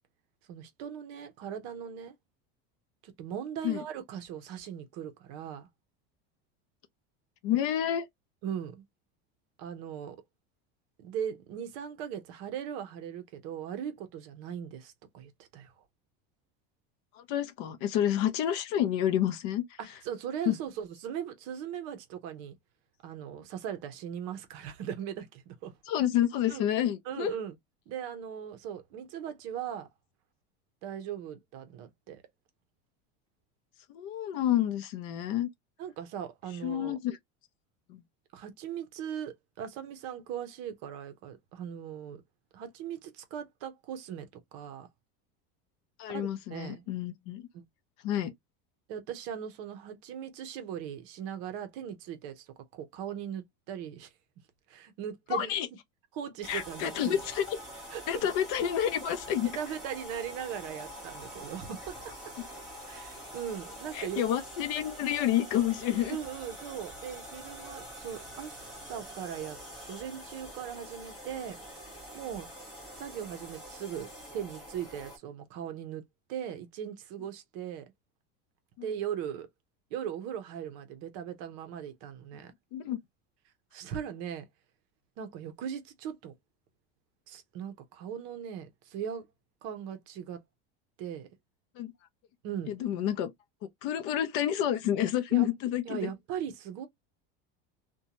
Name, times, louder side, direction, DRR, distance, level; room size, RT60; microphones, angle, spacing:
voice 1, 0.5-2.2 3.0-5.7 8.4-8.8 9.6-10.2 11.0-15.7 20.0-22.5 23.0-25.7 26.5-26.7 27.1-27.5 27.9-29.9 30.8-32.2 35.8-37.0 38.3-42.2 42.5-44.9 46.1-46.9 47.5-47.6 48.9-54.1 54.7-55.5 56.1-57.2 57.9-58.3 59.4-62.0 62.9-64.2 66.1-68.6 68.9-69.6 69.9-71.6 72.1-72.5 73.0-76.0 76.3-77.8 78.8-79.5 79.9-82.5 83.7-84.5 85.2-86.3 87.3-89.3 89.6-90.4 91.0-91.3 92.4-92.7 95.3-95.5 95.9-96.9, right 9 dB, 50° right, 0.7 m, -39 dB
voice 2, 7.4-8.1 17.1-19.6 20.5-20.6 25.9-27.3 33.9-35.5 36.6-37.2 37.9-38.0 46.0-47.5 48.0-48.3 55.3-55.7 56.5-57.6 58.1-59.5 63.9-66.2 78.8-78.9 82.7-83.0 91.8-91.9 92.7-93.3 93.6-96.1, left 11 dB, 45° left, 0.4 m, -29 dB
sound 1, 56.4-75.2, equal, ahead, 1.1 m, -45 dB
2.6 x 2.2 x 2.8 m
cardioid pair, 175°, 30 cm